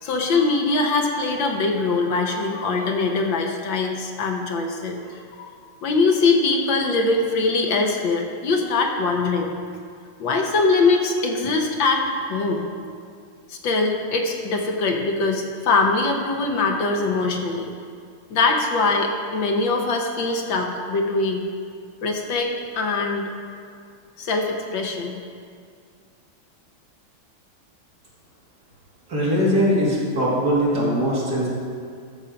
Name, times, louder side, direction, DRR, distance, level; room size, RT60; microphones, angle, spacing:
voice 1, 0.0-5.5 5.8-9.5 10.2-12.7 13.5-17.7 18.3-21.5 22.0-23.3 24.2-25.2, left 3 dB, 70° left, 2 dB, 1.6 m, -22 dB
voice 2, 29.1-31.5, equal, 50° right, -7 dB, 3.1 m, -21 dB
13.5 x 7.1 x 5.2 m, 2.2 s
omnidirectional pair, 2.2 m